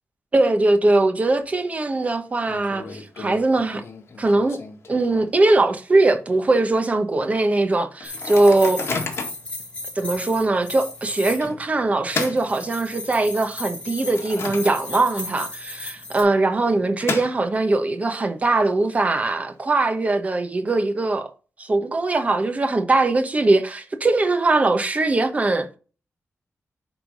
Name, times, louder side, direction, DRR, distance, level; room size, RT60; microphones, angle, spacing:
voice 1, 0.3-3.8 4.2-4.6 4.9-8.8 10.0-21.3 21.6-25.7, right 2 dB, 30° right, 1.1 m, -21 dB
Microwave oven, 1.2-1.7 2.0-2.1 2.5-5.5 6.0-6.1 6.3-6.7 7.2-7.3 8.0-9.5 10.1-10.3 11.4-13.2 13.7-15.2 15.5-15.6 16.4-17.8, left 4 dB, 55° left, 1.7 m, -33 dB
sound 1, 8.0-11.5 12.1-16.2, left 2 dB, 25° left, 2.3 m, -35 dB
9.5 x 3.7 x 5.3 m
wide cardioid pair, 160°, 5 cm